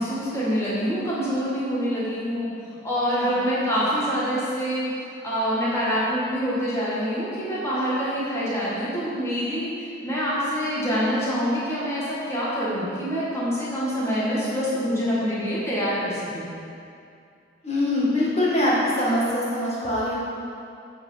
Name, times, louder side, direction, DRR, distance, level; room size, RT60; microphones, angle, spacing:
voice 1, 0.0-2.5 2.8-16.5, equal, 15° left, -9 dB, 1.7 m, -26 dB
voice 2, 17.6-20.1, left 1 dB, 35° left, -7 dB, 1.7 m, -23 dB
8.1 x 4.7 x 5.7 m, 2.5 s
head